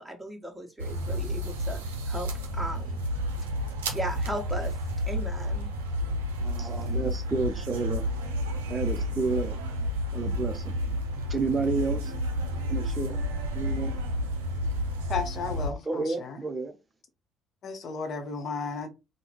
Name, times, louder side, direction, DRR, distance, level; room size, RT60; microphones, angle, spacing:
voice 1, 0.0-2.3 2.5-3.0 3.9-4.8 5.1-5.7, right 1 dB, 5° right, 1.2 m, -36 dB
sound 1, 0.8-15.7, equal, 85° right, 0.5 m, -31 dB
voice 2, 6.4-8.0 8.7-9.6 10.1-10.7 11.3-12.1 12.7-13.2 13.5-14.0 15.8-16.8, right 4 dB, 30° right, 0.5 m, -30 dB
voice 3, 15.1-16.4 17.6-18.9, left 4 dB, 55° left, 0.6 m, -34 dB
3.4 x 2.1 x 3.0 m
hypercardioid pair, 55°, 0 cm